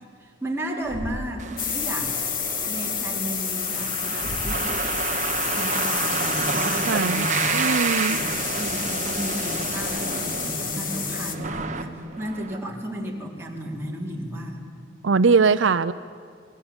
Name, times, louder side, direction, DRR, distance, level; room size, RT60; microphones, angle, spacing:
voice 1, 0.2-2.1 2.7-4.9 5.5-7.7 8.0-14.6, right 1 dB, 15° right, -2 dB, 4.0 m, -33 dB
Thump thud, 0.8-1.5 4.2-4.7, equal, 70° left, 3.3 m, -34 dB
sound 1, 1.4-12.6, right 5 dB, 40° right, 1.4 m, -30 dB
sound 2, 1.6-11.3, left 7 dB, 50° left, 1.8 m, -29 dB
voice 2, 6.9-7.3 7.5-8.2 15.0-15.9, right 4 dB, 85° right, 13 dB, 0.6 m, -20 dB
27.5 x 21.0 x 8.9 m, 2.2 s
head